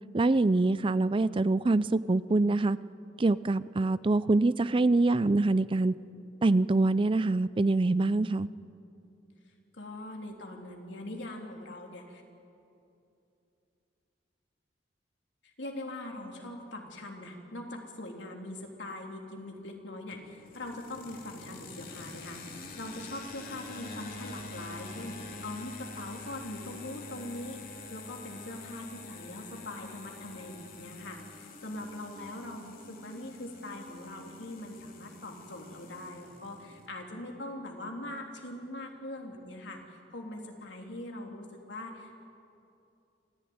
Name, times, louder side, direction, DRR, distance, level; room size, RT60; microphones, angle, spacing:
voice 1, 0.1-2.8 3.2-5.9 6.4-8.5, right 2 dB, 30° right, 17 dB, 0.5 m, -25 dB
voice 2, 9.7-12.2 15.4-39.8 40.1-42.1, left 1 dB, 80° left, 1 dB, 3.2 m, -42 dB
sound 1, 20.1-36.9, left 3 dB, 50° left, 2.9 m, -46 dB
26.5 x 15.0 x 9.5 m, 2.8 s
head